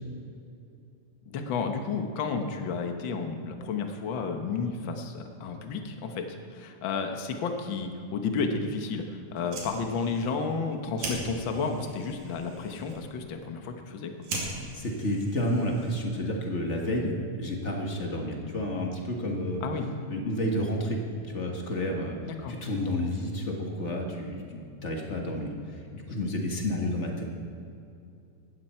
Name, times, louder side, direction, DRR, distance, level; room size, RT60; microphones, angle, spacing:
voice 1, 1.3-14.1 19.6-19.9 22.3-22.6, left 4 dB, 60° left, 5 dB, 1.2 m, -32 dB
Fire, 9.3-16.2, right 2 dB, 65° right, 3.8 m, -41 dB
voice 2, 14.7-19.6 20.1-21.0 21.3-22.2 22.5-27.2, left 1 dB, 35° left, 0 dB, 1.1 m, -30 dB
17.5 x 13.5 x 4.4 m, 2.6 s
omnidirectional pair, 3.7 m